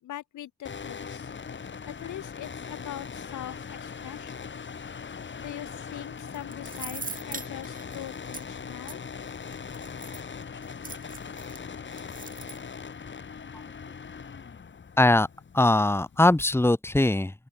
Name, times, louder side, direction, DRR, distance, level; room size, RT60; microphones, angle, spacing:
voice 1, 0.0-1.3 1.8-4.6 5.4-9.0, left 13 dB, 75° left, 5.7 m, -42 dB
sound 1, 0.6-16.6, left 6 dB, 40° left, 4.1 m, -40 dB
sound 2, 6.2-8.4 8.9-9.0 9.5-11.6 11.9-12.6, right 4 dB, 25° right, 7.3 m, -40 dB
voice 2, 15.0-15.3 15.5-17.3, left 2 dB, 10° left, 2.4 m, -21 dB
open air
cardioid pair, 90°, 30 cm